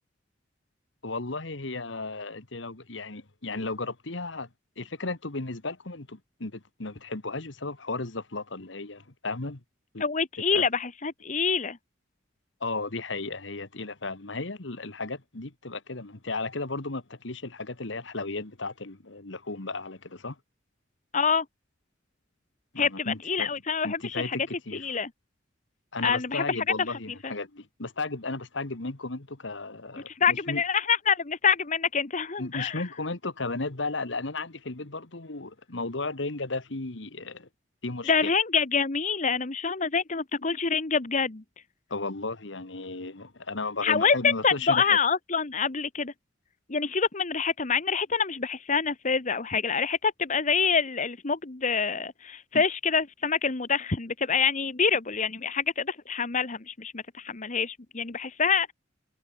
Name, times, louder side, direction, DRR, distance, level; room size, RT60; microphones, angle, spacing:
voice 1, 1.0-4.5 4.8-9.6 9.9-10.0 10.5-10.6 12.6-20.4 22.7-23.5 23.8-24.9 25.9-30.6 32.4-37.5 37.8-38.3 41.9-45.0 52.5-52.6, left 3 dB, 65° left, 1.8 m, -34 dB
voice 2, 10.0-11.8 21.1-21.4 22.8-24.4 24.7-25.1 26.0-26.5 27.2-27.3 30.1-32.8 38.1-41.4 43.8-46.1 46.7-58.7, left 5 dB, 40° left, 1.1 m, -26 dB
head